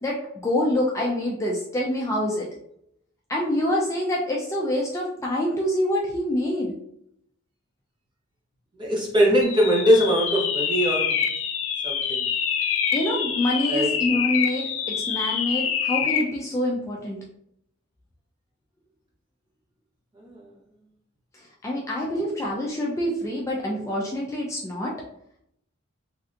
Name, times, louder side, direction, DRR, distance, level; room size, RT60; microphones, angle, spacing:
voice 1, 0.0-2.5 3.3-6.8 12.9-17.2 21.3-24.9, left 1 dB, 15° left, -3 dB, 0.4 m, -26 dB
voice 2, 8.8-11.2 11.8-12.3 13.7-13.9 20.2-20.4, equal, 25° right, -3 dB, 0.9 m, -21 dB
sound 1, 9.4-16.4, left 8 dB, 75° left, 0.4 m, -26 dB
3.2 x 2.7 x 2.5 m, 0.73 s
head